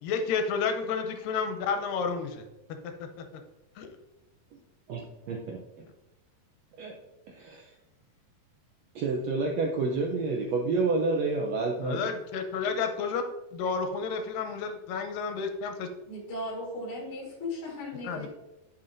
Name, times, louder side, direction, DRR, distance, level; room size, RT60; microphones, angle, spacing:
voice 1, 0.0-2.5 2.8-3.3 3.8-3.9 11.8-13.2 13.5-15.9 18.0-18.3, left 5 dB, 80° left, 6 dB, 2.5 m, -31 dB
voice 2, 4.9-5.9 6.8-7.0 7.3-7.7 8.9-12.1, right 3 dB, 80° right, 0 dB, 1.5 m, -29 dB
voice 3, 16.1-18.3, left 1 dB, 50° left, -4 dB, 2.5 m, -37 dB
11.0 x 6.0 x 2.6 m, 1.0 s
omnidirectional pair, 3.9 m